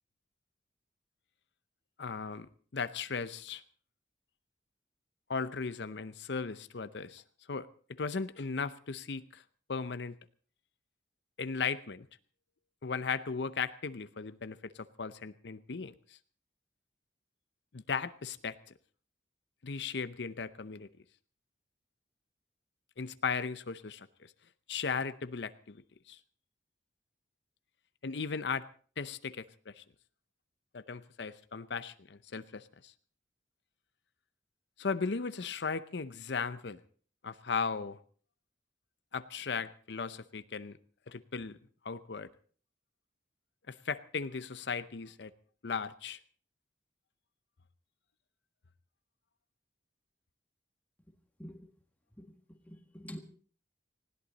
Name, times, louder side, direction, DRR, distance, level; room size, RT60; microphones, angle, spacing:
voice 1, 2.0-3.6 5.3-7.2 7.5-7.7 8.0-9.4 9.7-10.2 11.4-12.1 12.8-16.2 17.7-18.6 19.6-20.9 23.0-24.3 24.7-25.8 26.1-26.2 28.0-28.6 29.0-29.8 30.7-32.9 34.8-36.8 37.2-38.0 39.1-40.8 41.1-41.6 41.8-42.3 43.7-45.3 45.6-46.2, left 5 dB, 80° left, 13 dB, 0.7 m, -37 dB
voice 2, 51.4-51.7 52.2-53.2, equal, 10° left, 5 dB, 1.7 m, -48 dB
19.5 x 16.5 x 4.1 m, 0.43 s
head